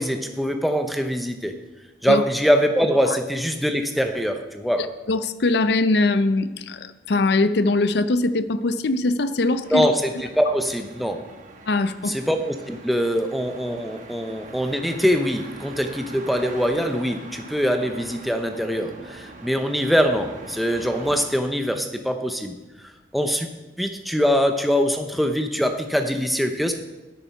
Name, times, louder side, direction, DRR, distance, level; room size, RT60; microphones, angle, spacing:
voice 1, 0.0-1.5 2.0-4.9 9.7-11.3 12.0-22.6 23.1-23.5 23.8-26.7, equal, ahead, 5 dB, 0.6 m, -23 dB
voice 2, 5.1-9.9 11.7-12.2, left 2 dB, 65° left, 12 dB, 0.5 m, -21 dB
sound 1, 9.6-21.2, right 2 dB, 45° right, 1.2 m, -42 dB
9.9 x 8.8 x 5.8 m, 1.1 s
head